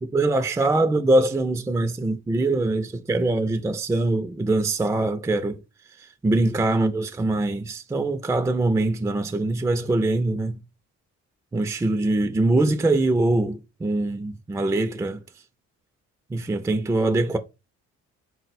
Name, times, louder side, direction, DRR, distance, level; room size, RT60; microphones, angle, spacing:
voice 1, 0.0-5.6 6.0-10.6 11.5-15.2 16.3-17.4, right 2 dB, 10° right, 0.3 m, -23 dB
3.8 x 2.1 x 4.1 m
cardioid pair, 90°, 30 cm